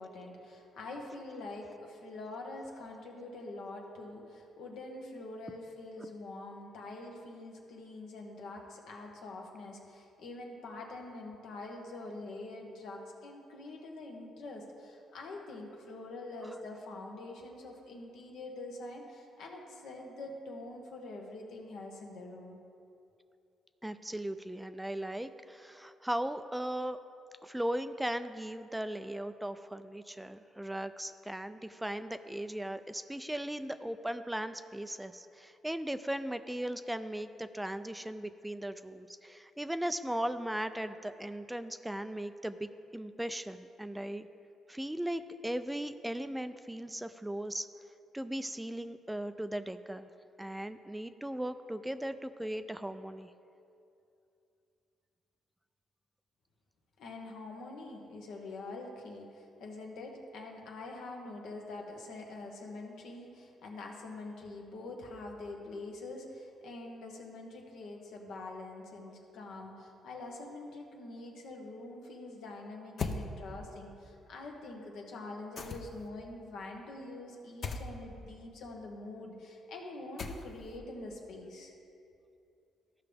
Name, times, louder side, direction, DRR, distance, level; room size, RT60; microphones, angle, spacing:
voice 1, 0.0-22.6 57.0-81.7, left 2 dB, 80° left, 1 dB, 1.2 m, -45 dB
voice 2, 23.8-27.0 27.4-44.3 44.7-47.7 48.1-50.1 50.4-53.3, right 1 dB, 5° right, 10 dB, 0.3 m, -38 dB
sound 1, 73.0-73.2 75.6-76.1 77.6-77.9 80.2-80.7, left 4 dB, 50° left, 0.6 m, -37 dB
13.5 x 5.7 x 3.4 m, 2.7 s
cardioid pair, 90°, 0 cm